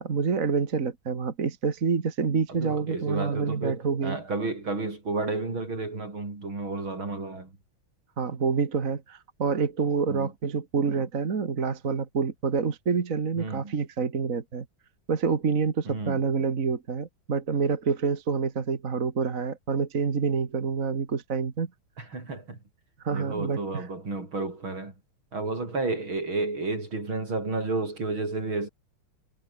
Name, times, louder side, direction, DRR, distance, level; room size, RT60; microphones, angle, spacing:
voice 1, 0.0-4.2 8.2-14.7 15.1-21.7 23.0-23.8, right 5 dB, 40° right, 2.0 m, -27 dB
voice 2, 2.5-7.6 10.1-10.3 13.4-13.7 15.9-16.3 22.0-22.6 23.1-25.0 25.3-28.7, right 3 dB, 70° right, 6.8 m, -31 dB
omnidirectional pair, 2.3 m